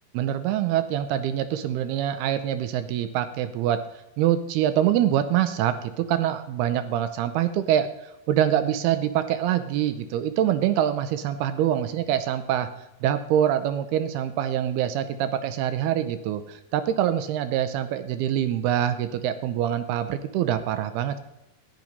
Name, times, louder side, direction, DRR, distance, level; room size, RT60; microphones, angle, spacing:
voice 1, 0.1-3.8 4.2-12.7 13.0-21.2, right 11 dB, 80° right, 11 dB, 2.7 m, -25 dB
13.5 x 11.0 x 5.4 m, 0.93 s
omnidirectional pair, 4.6 m